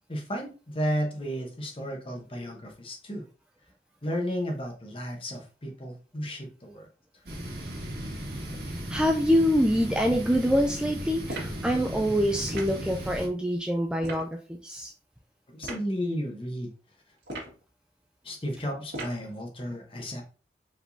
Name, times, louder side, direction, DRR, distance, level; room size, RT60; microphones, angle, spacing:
voice 1, 0.1-3.2 4.0-6.9 15.5-16.7 18.2-20.2, equal, 30° left, 1 dB, 1.1 m, -33 dB
sound 1, 7.3-13.3, equal, 60° right, 1.6 m, -36 dB
voice 2, 8.9-14.9, equal, 5° right, 3 dB, 0.3 m, -25 dB
sound 2, 11.3-11.6 12.5-12.8 14.0-14.3 15.6-15.9 17.2-17.6 18.9-19.3, right 2 dB, 85° right, 1.8 m, -37 dB
4.8 x 3.7 x 2.7 m, 0.36 s
head